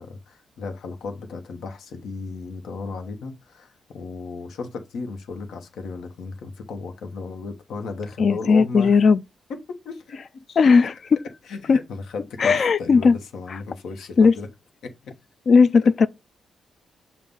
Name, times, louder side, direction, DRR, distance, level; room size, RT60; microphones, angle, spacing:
voice 1, 0.0-9.0 9.5-10.2 11.5-14.5 14.8-14.9, left 4 dB, 80° left, 1.1 m, -35 dB
voice 2, 8.2-9.2 10.6-10.9 11.7-11.8 12.4-13.2 13.5-13.6 14.2-14.3 15.5-16.1, left 5 dB, 50° left, 0.3 m, -16 dB
7.1 x 2.5 x 5.3 m
cardioid pair, 100°, 0 cm